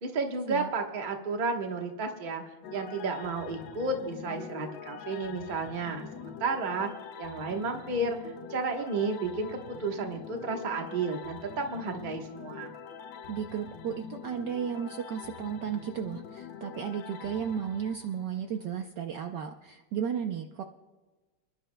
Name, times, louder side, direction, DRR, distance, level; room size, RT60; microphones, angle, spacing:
voice 1, 0.0-2.4 2.7-6.9 7.2-12.7, right 3 dB, 30° right, 3 dB, 0.9 m, -32 dB
sound 1, 2.6-18.7, left 7 dB, 70° left, 1.4 m, -45 dB
voice 2, 13.3-20.6, right 8 dB, 70° right, 5 dB, 1.1 m, -34 dB
28.5 x 11.0 x 2.2 m, 1.2 s
omnidirectional pair, 2.3 m